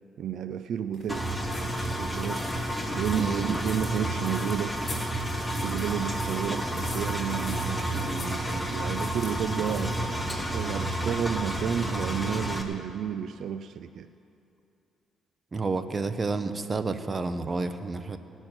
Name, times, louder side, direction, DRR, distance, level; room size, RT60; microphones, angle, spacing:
voice 1, 0.2-1.4 1.9-2.5 2.9-4.8 5.5-10.2 10.5-14.1, right 9 dB, 70° right, 11 dB, 0.4 m, -31 dB
sound 1, 0.9-10.8, left 3 dB, 40° left, 3.5 m, -45 dB
Engine, 1.1-12.6, right 1 dB, ahead, 1.3 m, -30 dB
voice 2, 3.2-3.6 15.5-18.2, right 3 dB, 30° right, 10 dB, 0.8 m, -30 dB
18.5 x 6.2 x 8.8 m, 2.7 s
cardioid pair, 90°, 0 cm